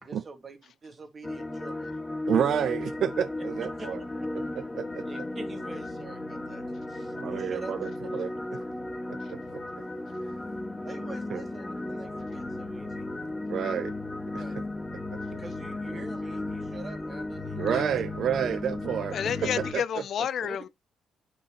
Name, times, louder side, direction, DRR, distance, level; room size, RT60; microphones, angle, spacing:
voice 1, 0.0-2.0 3.6-3.9 5.1-7.9 10.8-13.1 14.4-14.6 15.3-17.6 20.5-20.6, right 4 dB, 35° right, 1.9 m, -45 dB
sound 1, 1.2-19.7, left 2 dB, 20° left, 1.8 m, -35 dB
voice 2, 2.3-4.0 4.3-5.0 7.2-8.3 9.1-9.4 11.3-11.4 13.5-13.9 14.3-14.4 15.3-15.4 17.6-19.2 19.4-19.8, right 9 dB, 65° right, 0.4 m, -29 dB
voice 3, 17.5-17.8 19.1-20.7, left 8 dB, 65° left, 0.5 m, -30 dB
9.4 x 5.3 x 2.9 m
cardioid pair, 90°, 0 cm